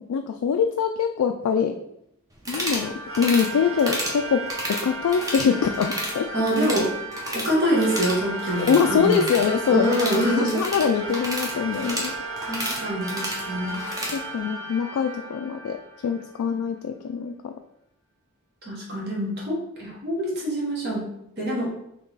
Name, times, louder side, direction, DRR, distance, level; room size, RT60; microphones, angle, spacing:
voice 1, 0.0-1.8 2.5-4.4 4.7-6.3 8.6-12.1 14.1-15.8 16.0-17.6, left 6 dB, 85° left, 5 dB, 0.3 m, -24 dB
sound 1, 2.4-2.9 3.1-3.5 3.8-4.2 4.5-5.5 5.7-6.1 6.4-7.5 7.8-14.2, right 1 dB, 15° right, 0.6 m, -31 dB
sound 2, 2.7-16.5, right 2 dB, 65° right, 0.7 m, -34 dB
voice 2, 6.3-6.9 7.3-9.2 9.7-10.6 12.4-13.8 18.6-21.7, equal, 45° right, -3 dB, 1.0 m, -25 dB
3.8 x 2.9 x 3.9 m, 0.78 s
head